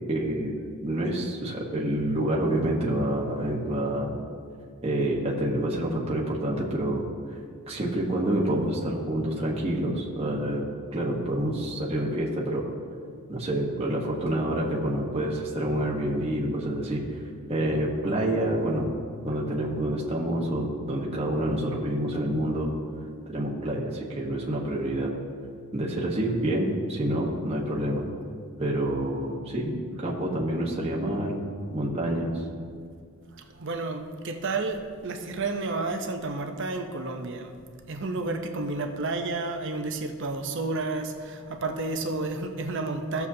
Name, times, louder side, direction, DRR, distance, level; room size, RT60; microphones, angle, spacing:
voice 1, 0.1-0.5 0.8-4.2 4.8-7.0 7.7-12.6 13.3-17.0 17.5-18.9 19.2-22.7 23.3-25.1 25.7-28.1 28.6-31.4 31.7-32.4, right 1 dB, 25° right, -4 dB, 1.2 m, -27 dB
voice 2, 33.3-37.5 37.9-43.3, right 3 dB, 55° right, 5 dB, 0.7 m, -31 dB
16.0 x 6.9 x 2.8 m, 2.2 s
head